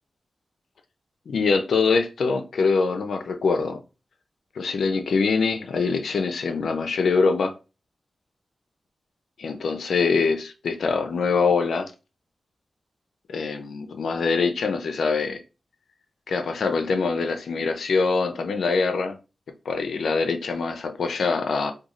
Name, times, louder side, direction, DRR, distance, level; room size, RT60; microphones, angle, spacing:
voice 1, 1.3-3.8 4.6-7.5 9.4-11.9 13.3-15.4 16.3-19.2 19.7-21.7, left 4 dB, 85° left, 0.5 m, -24 dB
3.0 x 2.3 x 3.7 m
wide cardioid pair, 105°, 0 cm